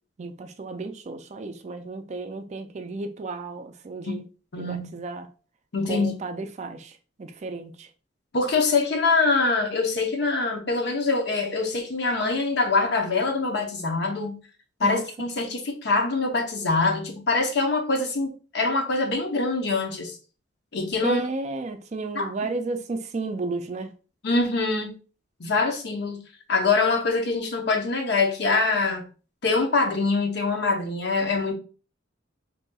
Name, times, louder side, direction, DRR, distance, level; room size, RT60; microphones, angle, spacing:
voice 1, 0.2-4.2 4.6-5.3 5.9-7.9 14.8-15.0 21.0-23.9, right 3 dB, 40° right, 0.4 m, -33 dB
voice 2, 4.5-4.9 5.7-6.2 8.3-14.4 14.8-20.2 20.7-21.2 22.1-22.5 24.2-24.9 25.4-26.2 26.5-29.0 29.4-31.5, left 3 dB, 65° left, 0.8 m, -24 dB
4.0 x 2.7 x 2.3 m
head